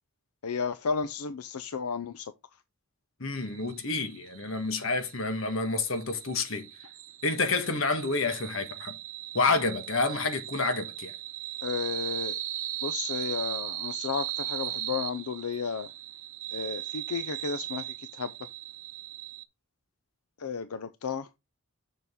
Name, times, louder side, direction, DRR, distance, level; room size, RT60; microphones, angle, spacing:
voice 1, 0.4-2.3 11.6-12.4 12.8-15.9 16.5-18.3 20.4-21.3, left 5 dB, 85° left, 0.6 m, -33 dB
voice 2, 3.2-6.7 7.2-8.9 9.3-11.1, left 3 dB, 60° left, 1.5 m, -29 dB
sound 1, 3.4-19.4, right 13 dB, 70° right, 0.8 m, -38 dB
6.9 x 6.5 x 3.7 m
head